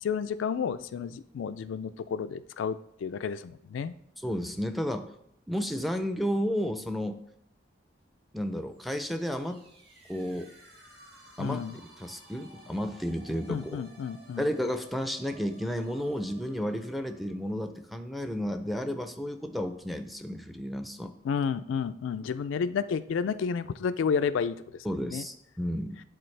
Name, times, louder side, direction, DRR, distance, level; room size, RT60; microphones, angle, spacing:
voice 1, 0.0-3.9 11.4-11.7 13.5-14.5 21.2-24.6 25.1-25.2, left 6 dB, 90° left, 12 dB, 0.3 m, -31 dB
voice 2, 4.2-5.1 5.5-7.2 8.3-9.6 10.1-10.5 11.4-11.6 12.0-13.9 14.4-21.1 24.8-26.0, equal, ahead, 7 dB, 0.4 m, -32 dB
sound 1, 8.7-18.4, right 1 dB, 80° right, 2.8 m, -55 dB
10.5 x 3.8 x 3.2 m, 0.74 s
head